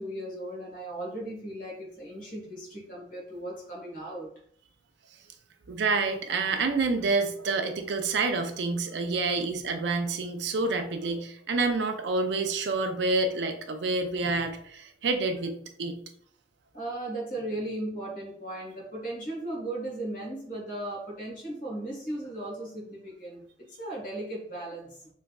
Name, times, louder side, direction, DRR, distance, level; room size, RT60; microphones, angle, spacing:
voice 1, 0.0-4.3 16.7-25.1, right 1 dB, 50° left, -4 dB, 1.3 m, -37 dB
voice 2, 5.7-16.0, right 3 dB, 75° right, 6 dB, 0.5 m, -28 dB
3.4 x 3.1 x 2.3 m, 0.64 s
head